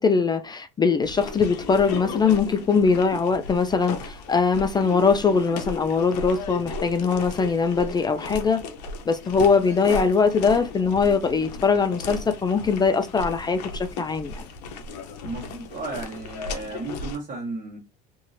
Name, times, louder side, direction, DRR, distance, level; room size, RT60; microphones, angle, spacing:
voice 1, 0.0-8.6 9.1-14.4, left 5 dB, 20° left, 0.3 m, -21 dB
sound 1, 1.0-17.2, left 3 dB, 90° left, 0.6 m, -35 dB
voice 2, 15.2-17.8, right 3 dB, 40° right, 1.3 m, -34 dB
2.9 x 2.7 x 2.5 m
supercardioid pair, 90°, 21 cm